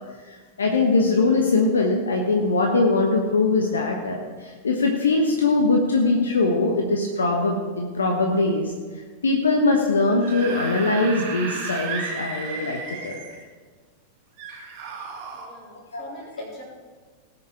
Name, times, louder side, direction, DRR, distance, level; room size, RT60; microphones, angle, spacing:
voice 1, 0.6-8.7 9.2-13.2 15.9-16.2, left 3 dB, 70° left, 1 dB, 1.2 m, -21 dB
Screaming / Screech, 10.0-13.4 14.4-15.5, right 4 dB, 45° right, 2.9 m, -33 dB
voice 2, 15.3-16.6, equal, 30° left, -4 dB, 4.2 m, -43 dB
19.0 x 6.6 x 4.9 m, 1.4 s
figure-of-eight pair, 90°, 0 cm